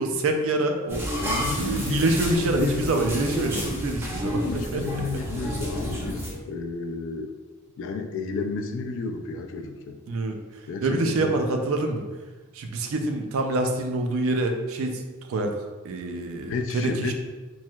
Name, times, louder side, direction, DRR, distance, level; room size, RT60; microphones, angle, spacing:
voice 1, 0.0-1.1 1.6-5.0 10.1-10.4 10.8-12.0 12.5-15.0 15.3-15.5 15.8-17.1, right 2 dB, 70° right, 4 dB, 0.4 m, -26 dB
sound 1, 0.9-6.3, equal, 10° right, 0.6 m, -30 dB
voice 2, 1.1-3.0 4.5-7.3 7.8-10.0 10.7-11.4 16.5-17.1, left 3 dB, 60° left, 4 dB, 0.3 m, -31 dB
3.1 x 2.8 x 2.3 m, 1.2 s
head